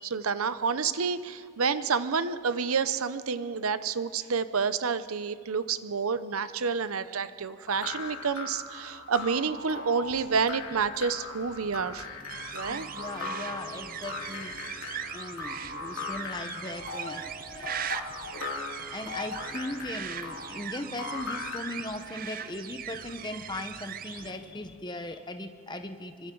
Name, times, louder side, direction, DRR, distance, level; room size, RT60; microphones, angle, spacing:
voice 1, 0.0-12.1 12.5-12.9, right 5 dB, 80° right, 13 dB, 0.7 m, -29 dB
sound 1, 7.7-21.9, left 3 dB, 90° left, 2.5 m, -39 dB
sound 2, 10.0-24.8, equal, 65° left, 7.1 m, -54 dB
sound 3, 12.3-24.3, right 9 dB, 40° right, 0.5 m, -40 dB
voice 2, 12.7-14.5 15.1-17.7 18.9-26.3, left 1 dB, 20° left, 7 dB, 1.0 m, -38 dB
27.0 x 25.0 x 3.9 m, 2.1 s
head